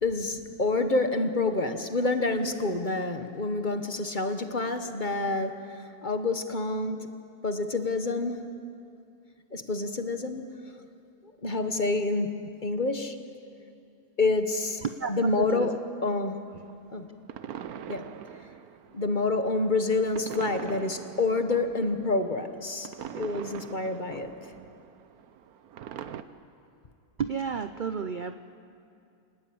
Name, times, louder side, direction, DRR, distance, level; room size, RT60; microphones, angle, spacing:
voice 1, 0.0-5.7 6.0-7.1 7.4-8.5 9.5-10.4 11.4-13.2 14.2-14.8 15.1-15.7 16.0-16.4 16.9-17.1 17.9-18.1 18.9-24.3, left 3 dB, 35° left, 7 dB, 1.2 m, -28 dB
voice 2, 14.8-15.8 16.5-16.6 27.2-28.3, right 6 dB, 55° right, 9 dB, 0.5 m, -32 dB
sound 1, 16.5-26.2, right 9 dB, 75° right, 1.3 m, -43 dB
27.5 x 19.5 x 8.7 m, 2.5 s
omnidirectional pair, 1.6 m